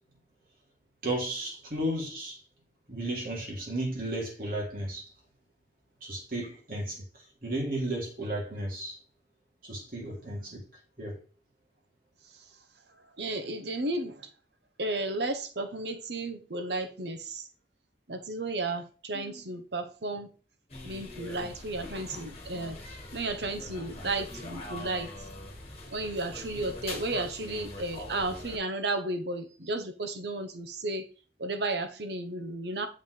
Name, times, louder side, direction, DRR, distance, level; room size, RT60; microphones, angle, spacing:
voice 1, 1.0-2.4 2.9-5.1 6.0-9.0 9.6-10.6 11.0-11.2, right 1 dB, 50° right, 3.0 m, -34 dB
voice 2, 13.2-14.3 14.8-17.4 18.1-20.3 20.8-22.8 23.1-25.1 25.9-31.0 31.4-32.9, right 2 dB, 70° right, 1.0 m, -33 dB
sound 1, 20.7-28.6, left 2 dB, 35° left, 1.6 m, -43 dB
7.3 x 5.7 x 3.3 m
head